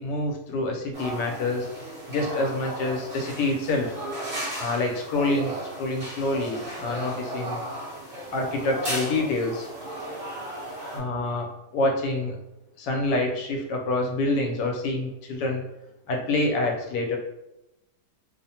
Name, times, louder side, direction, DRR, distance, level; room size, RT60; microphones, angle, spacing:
voice 1, 0.0-1.7 2.1-3.9 4.6-7.6 8.3-9.7 10.9-12.3 12.8-15.6 16.1-17.2, left 2 dB, 80° left, 1 dB, 1.2 m, -27 dB
sound 1, 0.9-11.0, right 1 dB, 35° right, 1.0 m, -35 dB
3.0 x 2.1 x 2.7 m, 0.90 s
omnidirectional pair, 1.8 m